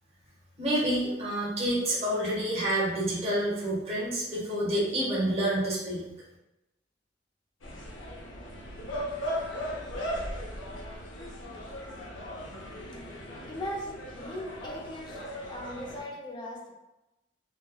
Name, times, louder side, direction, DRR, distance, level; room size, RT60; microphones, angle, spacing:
voice 1, 0.6-6.0, right 1 dB, 35° right, -8 dB, 0.9 m, -28 dB
College campus mid afternoon lunch (ambience), 7.6-16.0, equal, 90° left, 0.6 m, -38 dB
voice 2, 13.1-16.7, equal, 25° left, -3 dB, 0.5 m, -39 dB
3.2 x 2.1 x 2.2 m, 0.97 s
head